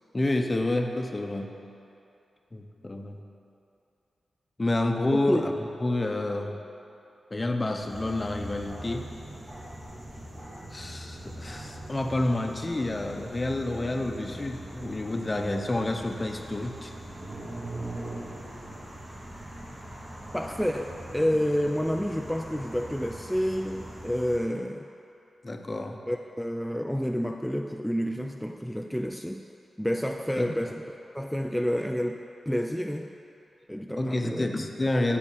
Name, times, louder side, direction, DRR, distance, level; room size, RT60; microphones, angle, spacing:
voice 1, 0.1-1.5 2.5-3.2 4.6-5.4 5.8-6.6 7.3-9.1 10.7-16.9 25.4-26.0 30.4-30.5 34.0-35.2, left 2 dB, 30° left, 4 dB, 0.7 m, -29 dB
voice 2, 5.1-5.5 20.3-24.9 26.1-29.4 29.8-33.1 33.7-34.5, equal, 5° left, 3 dB, 0.3 m, -29 dB
sound 1, 7.8-24.4, right 1 dB, 40° right, 2.0 m, -41 dB
6.8 x 5.3 x 6.9 m, 2.7 s
cardioid pair, 60°, 0 cm